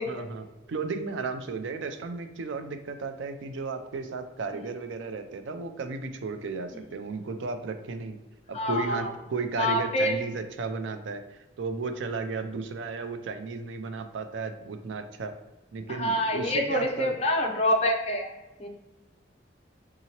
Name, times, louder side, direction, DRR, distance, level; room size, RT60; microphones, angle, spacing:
voice 1, 0.1-8.2 8.5-15.3 15.7-17.1, right 4 dB, 85° right, 8 dB, 0.4 m, -34 dB
voice 2, 8.5-9.1 9.6-10.2 15.9-18.3 18.6-18.7, left 1 dB, 35° left, 1 dB, 0.5 m, -26 dB
3.6 x 2.8 x 2.8 m, 1.1 s
head